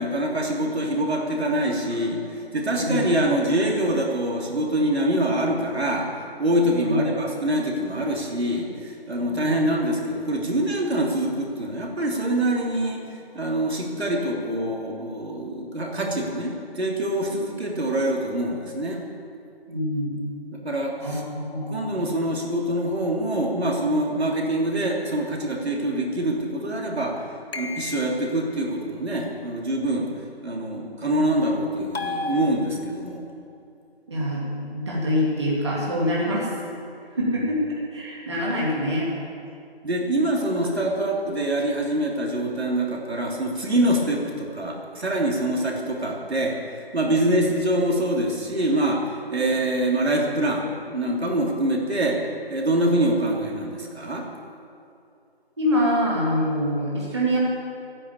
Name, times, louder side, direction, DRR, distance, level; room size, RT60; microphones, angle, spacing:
voice 1, 0.0-6.1 6.4-13.1 13.3-19.0 20.5-21.2 21.7-27.2 27.5-30.1 30.4-33.2 37.2-37.5 39.8-46.6 46.9-52.2 52.5-54.3, right 1 dB, 85° right, -1 dB, 3.3 m, -25 dB
voice 2, 2.8-3.1 6.7-7.0 9.2-9.6 17.7-17.8 19.7-20.2 21.0-21.9 34.1-36.5 37.1-37.6 37.9-39.1 55.6-57.4, equal, 25° right, -5 dB, 2.1 m, -25 dB
sound 1, 27.5-28.4 31.9-33.2, left 3 dB, 70° left, 1.1 m, -33 dB
13.0 x 9.9 x 8.4 m, 2.6 s
figure-of-eight pair, 180°, 31 cm